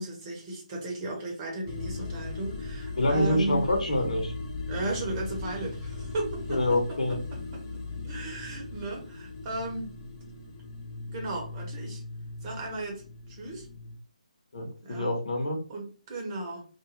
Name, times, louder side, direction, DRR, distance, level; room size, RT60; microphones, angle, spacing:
voice 1, 0.0-3.7 4.7-7.6 8.0-9.9 11.1-12.0 12.4-13.7 14.8-15.1 15.7-16.7, right 2 dB, 25° right, -1 dB, 0.9 m, -35 dB
sound 1, 1.7-14.0, left 3 dB, 25° left, 0.7 m, -38 dB
voice 2, 3.0-4.3 6.5-7.2 14.5-15.6, left 1 dB, 60° left, 2 dB, 1.0 m, -26 dB
2.5 x 2.2 x 3.0 m, 0.38 s
figure-of-eight pair, 150°, 4 cm